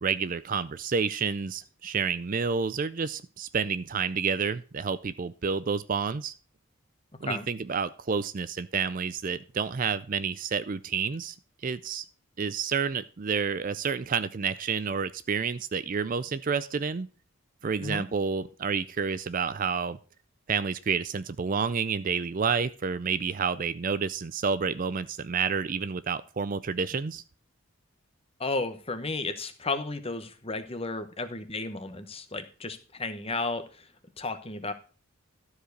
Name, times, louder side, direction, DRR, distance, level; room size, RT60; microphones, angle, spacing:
voice 1, 0.0-6.3 7.2-11.4 11.6-12.1 12.4-17.1 17.6-20.0 20.5-27.2, right 5 dB, 35° right, 15 dB, 0.4 m, -29 dB
voice 2, 28.4-33.9 34.2-34.7, left 3 dB, 25° left, 10 dB, 1.0 m, -33 dB
13.0 x 4.9 x 6.5 m, 0.37 s
head